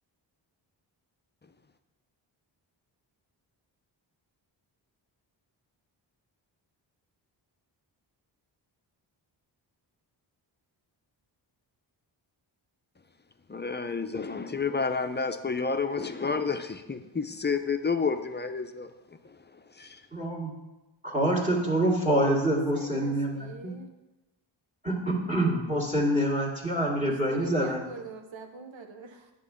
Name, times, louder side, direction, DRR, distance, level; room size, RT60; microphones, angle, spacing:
voice 1, 13.5-19.4 19.7-20.0, left 5 dB, 25° left, 8 dB, 0.6 m, -30 dB
voice 2, 20.1-20.5 21.0-23.7 24.8-27.9, right 1 dB, 15° right, -3 dB, 2.0 m, -26 dB
voice 3, 22.5-23.9 27.0-29.3, right 4 dB, 80° right, 5 dB, 1.1 m, -44 dB
9.6 x 3.8 x 7.1 m, 1.0 s
cardioid pair, 70°, 45 cm